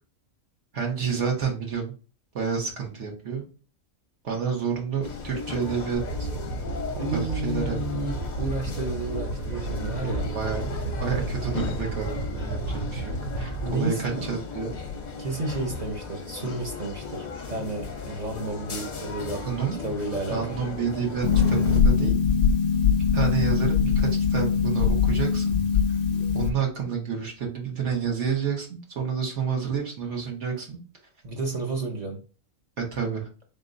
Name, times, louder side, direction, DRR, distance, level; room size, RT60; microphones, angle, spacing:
voice 1, 0.7-1.9 2.3-3.4 4.2-6.3 7.1-7.8 10.0-10.7 11.0-14.7 19.4-19.8 20.3-22.1 23.1-25.6 26.3-30.8 32.8-33.3, right 6 dB, 60° right, 1.5 m, -29 dB
sound 1, 5.0-21.8, left 4 dB, 45° left, 0.6 m, -36 dB
sound 2, 5.9-13.7, right 3 dB, 90° right, 1.1 m, -33 dB
voice 2, 7.0-10.3 13.6-14.2 15.2-19.5 19.8-20.6 31.2-32.2, right 2 dB, 40° right, 0.7 m, -31 dB
Harp, 21.2-26.5, left 6 dB, 85° left, 0.3 m, -22 dB
3.8 x 3.6 x 2.6 m
omnidirectional pair, 1.4 m